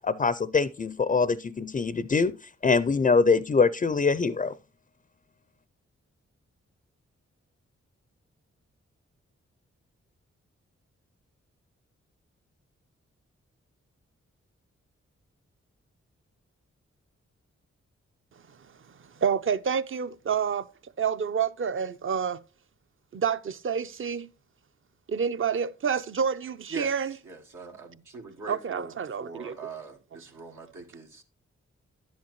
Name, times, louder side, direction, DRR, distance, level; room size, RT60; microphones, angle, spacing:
voice 1, 0.0-4.5, left 4 dB, 25° left, 0.4 m, -24 dB
voice 2, 19.2-20.7 21.0-22.4 23.1-24.3 25.1-27.1 28.5-29.6, right 7 dB, 45° right, 0.6 m, -28 dB
voice 3, 26.7-31.2, right 3 dB, 80° right, 1.5 m, -43 dB
11.0 x 7.4 x 3.0 m
supercardioid pair, 40°, 30 cm